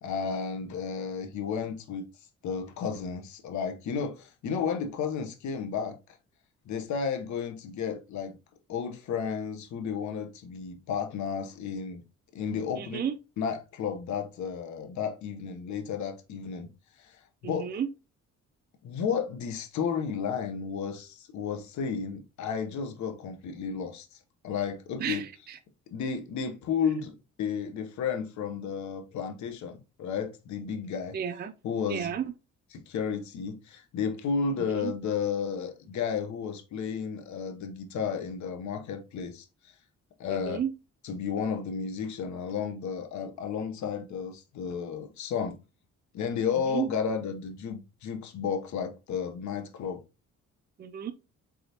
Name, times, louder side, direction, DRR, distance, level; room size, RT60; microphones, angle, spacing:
voice 1, 0.0-2.0 2.4-6.0 6.7-8.3 8.7-12.0 12.3-13.0 13.4-16.7 17.0-17.2 17.4-17.8 18.8-24.2 24.4-25.2 25.9-31.1 31.6-32.1 32.7-39.7 40.2-40.6 41.0-45.6 46.1-50.0, left 6 dB, 70° left, 0.9 m, -32 dB
voice 2, 12.8-13.1 17.4-17.9 25.0-25.6 31.1-31.5 31.9-32.2 34.6-34.9 40.3-40.7 46.7-46.9 50.8-51.1, right 8 dB, 35° right, 0.5 m, -32 dB
3.9 x 3.5 x 2.8 m
cardioid pair, 90°, 30 cm